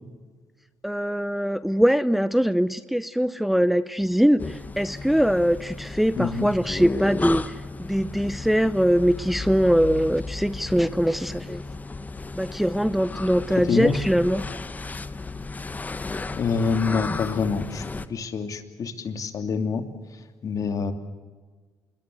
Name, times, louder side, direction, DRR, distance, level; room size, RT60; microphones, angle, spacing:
voice 1, 0.8-11.6 12.3-14.4, equal, ahead, 15 dB, 0.7 m, -22 dB
sound 1, 4.4-18.1, left 3 dB, 20° left, 1.1 m, -34 dB
voice 2, 6.2-6.5 13.5-14.0 16.3-19.8 20.1-20.9, left 5 dB, 50° left, 8 dB, 2.9 m, -26 dB
26.0 x 22.0 x 8.0 m, 1.4 s
cardioid pair, 85°, 7 cm